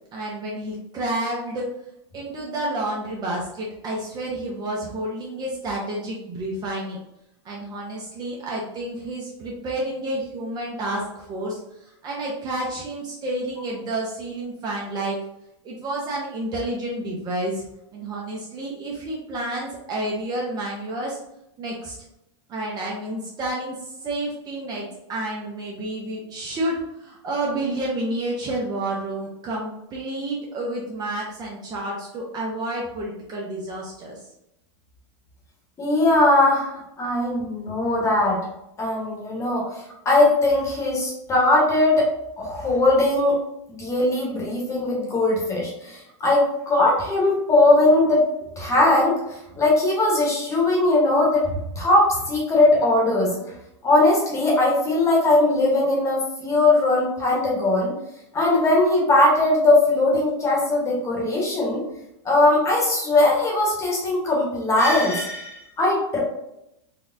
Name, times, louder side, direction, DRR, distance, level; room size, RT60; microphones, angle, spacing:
voice 1, 0.1-1.7 2.1-7.0 7.4-15.2 15.6-17.6 17.9-21.2 21.6-21.9 22.5-34.2, right 1 dB, 25° right, -2 dB, 0.7 m, -30 dB
voice 2, 35.8-38.4 38.8-42.1 42.4-43.4 43.8-48.2 48.6-51.5 51.8-53.5 53.8-57.9 58.3-61.8 62.2-66.2, left 2 dB, 20° left, -3 dB, 1.1 m, -20 dB
4.1 x 2.3 x 2.6 m, 0.84 s
supercardioid pair, 140°, 16 cm